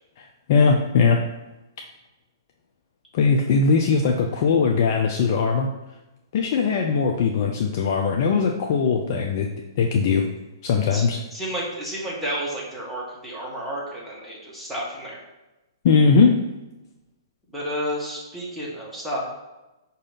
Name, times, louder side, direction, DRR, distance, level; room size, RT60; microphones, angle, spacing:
voice 1, 0.2-1.2 3.1-5.7 6.3-9.5 9.8-10.3 10.6-11.2 15.8-16.5, left 5 dB, 45° left, 2 dB, 0.4 m, -20 dB
voice 2, 11.3-15.2 17.5-19.2, equal, ahead, -7 dB, 1.3 m, -31 dB
4.9 x 2.7 x 3.8 m, 1.0 s
figure-of-eight pair, 115°, 2 cm